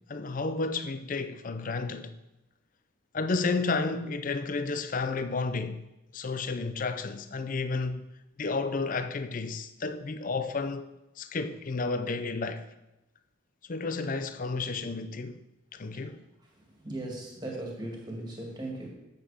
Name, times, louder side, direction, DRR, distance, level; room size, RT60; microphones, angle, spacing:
voice 1, 0.1-2.1 3.1-5.8 6.1-8.1 8.4-10.9 11.2-12.7 13.7-15.4 15.7-16.2, left 3 dB, 40° left, 0.5 m, -31 dB
voice 2, 16.5-18.9, right 1 dB, 20° right, 2.1 m, -38 dB
8.1 x 8.0 x 5.0 m
head